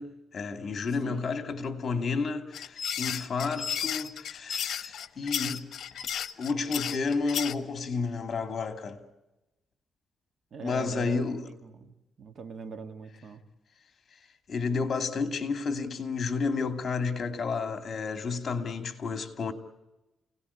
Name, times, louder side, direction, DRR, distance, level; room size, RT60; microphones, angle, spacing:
voice 1, 0.0-5.7 6.4-9.0 10.6-11.4 14.5-19.5, left 4 dB, 45° left, 2.6 m, -31 dB
sound 1, 2.5-7.5, left 8 dB, 65° left, 1.0 m, -33 dB
voice 2, 10.5-11.2 11.5-13.4, right 5 dB, 55° right, 2.0 m, -42 dB
29.5 x 18.0 x 8.6 m
cardioid pair, 115°, 0 cm